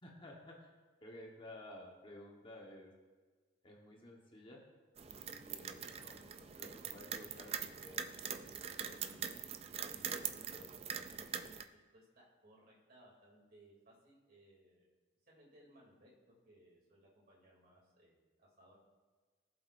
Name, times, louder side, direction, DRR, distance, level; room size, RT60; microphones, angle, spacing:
voice 1, 0.0-0.7 1.0-2.9 3.6-4.6 5.1-8.6 8.9-9.3 9.9-10.7, left 1 dB, 25° left, -1 dB, 1.2 m, -55 dB
sound 1, 5.0-11.6, right 7 dB, 30° right, 0.4 m, -43 dB
voice 2, 11.7-14.9 15.3-18.8, right 1 dB, 50° right, -4 dB, 2.9 m, -64 dB
18.0 x 7.8 x 2.6 m, 1.4 s
head